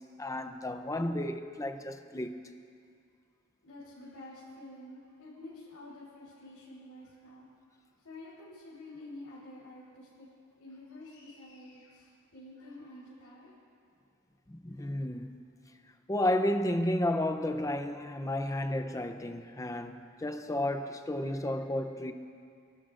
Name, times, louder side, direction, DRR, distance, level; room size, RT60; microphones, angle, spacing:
voice 1, 0.0-2.3 14.5-15.3 16.1-22.1, left 1 dB, 15° left, 0.6 m, -32 dB
voice 2, 3.6-7.5 8.0-10.3 10.6-13.5 14.8-14.9 21.3-21.5, left 1 dB, 90° left, 4.4 m, -49 dB
27.0 x 12.5 x 2.5 m
head